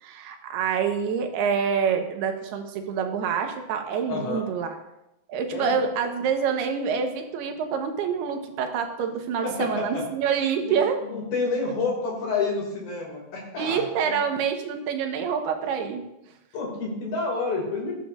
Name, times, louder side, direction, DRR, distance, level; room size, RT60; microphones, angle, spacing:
voice 1, 0.0-4.8 5.3-11.0 13.6-16.0, right 7 dB, 85° right, 4 dB, 3.1 m, -26 dB
voice 2, 4.1-4.4 5.5-5.8 9.4-10.0 10.6-14.1 16.5-17.9, left 3 dB, 65° left, -2 dB, 4.2 m, -29 dB
19.0 x 9.3 x 2.5 m, 0.91 s
omnidirectional pair, 4.5 m